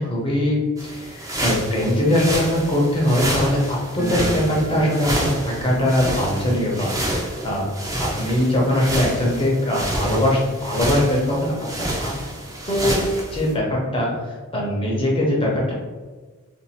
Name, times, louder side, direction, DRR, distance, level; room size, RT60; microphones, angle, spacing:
voice 1, 0.0-7.7 8.0-12.1 12.7-13.0 13.3-15.7, left 1 dB, 25° left, -3 dB, 0.8 m, -21 dB
sound 1, 0.8-13.5, right 1 dB, 15° right, 0.5 m, -28 dB
sound 2, 4.0-10.7 11.0-11.1 11.3-11.4 12.2-12.3 12.5-13.7, right 3 dB, 75° right, 0.7 m, -37 dB
2.7 x 2.5 x 4.1 m, 1.3 s
head